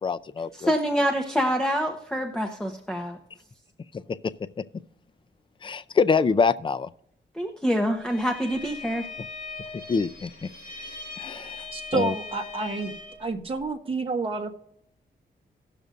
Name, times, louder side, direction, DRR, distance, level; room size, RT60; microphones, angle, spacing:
voice 1, 0.0-0.7 5.6-6.9 9.9-10.5 11.2-11.7 11.9-12.1, left 5 dB, 25° left, 12 dB, 0.4 m, -25 dB
voice 2, 0.5-3.2 7.3-9.1, equal, 5° left, 3 dB, 1.0 m, -26 dB
Bowed string instrument, 8.0-13.3, left 3 dB, 70° left, 4.2 m, -40 dB
voice 3, 11.7-12.9 13.2-14.5, right 3 dB, 30° right, 3 dB, 1.0 m, -29 dB
18.0 x 6.7 x 2.5 m, 0.75 s
wide cardioid pair, 105°, 19 cm